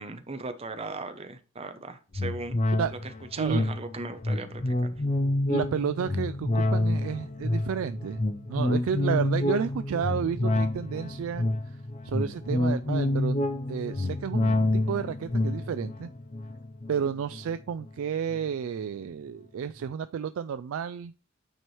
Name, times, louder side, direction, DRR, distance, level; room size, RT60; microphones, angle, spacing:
voice 1, 0.0-2.6 3.3-5.0, right 3 dB, 30° right, 8 dB, 0.7 m, -37 dB
sound 1, 2.1-17.9 18.3-18.4, left 1 dB, 35° left, 0.6 m, -28 dB
voice 2, 5.5-8.2 8.5-11.5 12.0-16.1 16.9-21.1, right 7 dB, 70° right, 12 dB, 0.3 m, -31 dB
9.2 x 4.5 x 3.2 m, 0.34 s
head